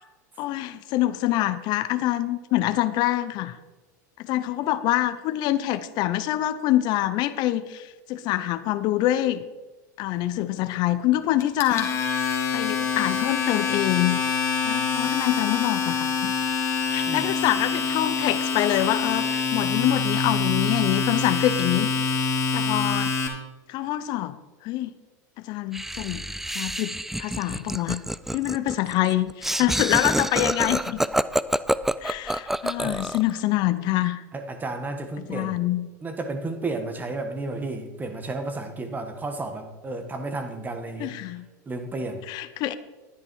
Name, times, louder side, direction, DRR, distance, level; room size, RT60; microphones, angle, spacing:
voice 1, 0.4-3.6 4.2-9.4 10.0-11.9 12.5-14.2 14.6-16.3 16.9-21.9 22.5-23.1 23.7-24.4 24.6-24.9 25.4-26.2 26.5-28.0 28.3-31.0 32.0-34.2 35.3-35.9 41.0-41.5 42.3-42.7, left 14 dB, 50° left, 12 dB, 0.7 m, -25 dB
Domestic sounds home sounds, 11.4-23.3, left 5 dB, 30° left, 2.2 m, -25 dB
voice 2, 17.1-17.4 32.8-32.9 34.3-35.6 36.0-41.1 41.7-42.3, right 2 dB, 20° right, 7 dB, 1.5 m, -32 dB
Laughter, 25.7-33.3, right 1 dB, 5° right, 0.3 m, -27 dB
11.0 x 9.6 x 4.6 m, 1.2 s
hypercardioid pair, 110°, 9 cm